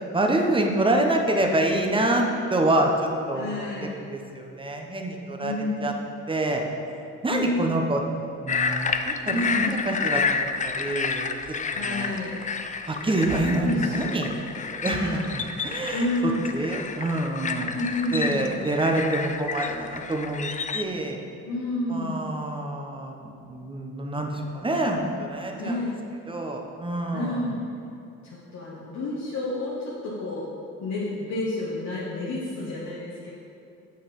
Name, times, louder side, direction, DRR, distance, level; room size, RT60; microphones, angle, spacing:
voice 1, 0.1-2.9 3.3-3.6 3.9-5.5 5.8-5.9 6.3-6.6 7.2-8.0 8.4-8.9 9.3-11.3 11.7-12.1 12.9-14.4 14.7-17.8 18.1-21.2 21.9-25.8 26.3-27.6, right 1 dB, 15° right, 2 dB, 1.0 m, -26 dB
voice 2, 3.3-3.9 5.4-5.9 7.3-7.8 9.3-9.8 11.7-12.4 13.6-14.3 14.9-15.4 15.9-16.5 17.7-18.6 21.5-22.3 24.1-24.4 25.0-25.1 25.6-25.9 27.1-27.6 28.2-30.4 30.8-33.3, left 2 dB, 65° left, -7 dB, 1.4 m, -30 dB
sound 1, 8.5-20.8, left 5 dB, 25° left, 0.4 m, -30 dB
6.6 x 6.4 x 5.4 m, 2.7 s
cardioid pair, 90°, 30 cm